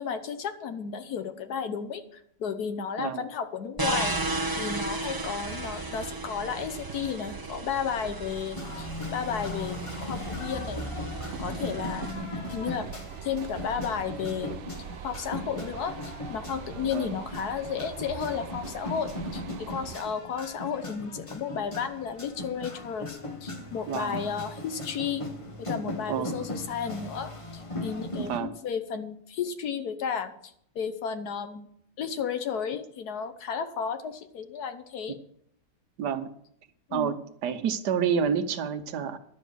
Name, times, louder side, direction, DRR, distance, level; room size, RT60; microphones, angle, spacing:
voice 1, 0.0-4.1 4.6-10.8 11.4-12.9 13.2-14.6 15.0-25.2 25.6-30.3 30.7-31.7 32.0-35.2 36.9-37.1, left 7 dB, 70° left, 9 dB, 1.4 m, -33 dB
sound 1, 3.8-12.1, right 2 dB, 20° right, 0.6 m, -35 dB
sound 2, 3.9-20.0, right 8 dB, 60° right, 0.8 m, -42 dB
sound 3, 8.5-28.4, left 1 dB, 20° left, 1.0 m, -38 dB
voice 2, 23.9-24.2 26.1-26.4 28.2-28.5 36.0-36.3 36.9-39.2, right 7 dB, 75° right, 10 dB, 1.4 m, -29 dB
11.0 x 7.1 x 6.2 m, 0.70 s
omnidirectional pair, 1.8 m